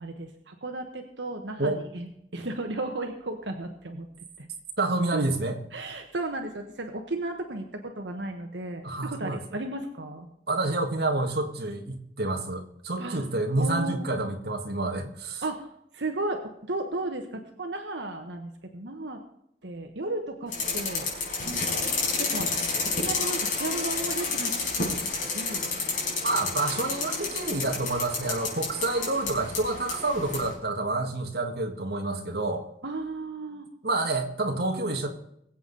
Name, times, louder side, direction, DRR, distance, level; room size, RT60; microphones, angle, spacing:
voice 1, 0.0-2.1 2.3-4.1 4.4-4.5 5.1-5.2 5.7-10.3 13.0-13.2 13.6-14.1 15.4-15.7 15.9-19.2 19.6-21.1 21.5-21.9 22.2-22.5 22.9-24.5 24.8-25.0 25.3-25.7 32.8-33.7, right 2 dB, 85° right, 4 dB, 1.4 m, -34 dB
voice 2, 4.8-5.6 8.8-9.4 10.5-15.4 26.2-32.6 33.8-35.1, right 2 dB, 60° right, 3 dB, 1.8 m, -28 dB
sound 1, 20.5-30.5, left 4 dB, 45° left, 5.0 m, -30 dB
22.5 x 8.1 x 4.1 m, 0.75 s
head